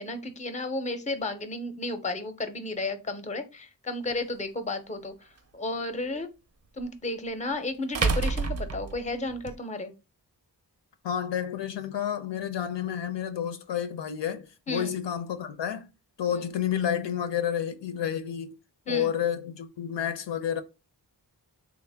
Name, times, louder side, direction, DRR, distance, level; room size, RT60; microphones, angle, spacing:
voice 1, 0.0-6.3 6.8-9.9 14.7-14.9 16.3-16.4 18.9-19.1, left 2 dB, 20° left, 0.5 m, -33 dB
sound 1, 4.1-4.2 6.8-6.9 7.9-9.5, right 4 dB, 40° right, 0.4 m, -28 dB
voice 2, 11.0-15.9 16.2-18.5 18.9-20.6, left 9 dB, 85° left, 0.6 m, -30 dB
3.4 x 2.1 x 3.3 m
wide cardioid pair, 80°, 42 cm